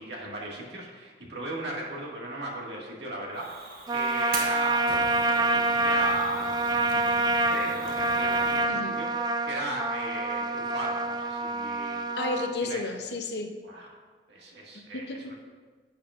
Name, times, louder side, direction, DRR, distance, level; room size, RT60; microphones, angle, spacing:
voice 1, 0.0-12.1 12.6-12.8 13.6-13.9 14.3-15.3, right 1 dB, 70° right, -2 dB, 1.9 m, -37 dB
Fire, 3.3-8.7, right 3 dB, 50° right, 1.2 m, -41 dB
Trumpet, 3.9-12.6, right 2 dB, 20° right, 0.3 m, -27 dB
voice 2, 8.7-9.0 12.2-13.5 14.7-15.3, left 3 dB, 65° left, 5 dB, 0.7 m, -33 dB
10.0 x 8.9 x 2.5 m, 1.4 s
head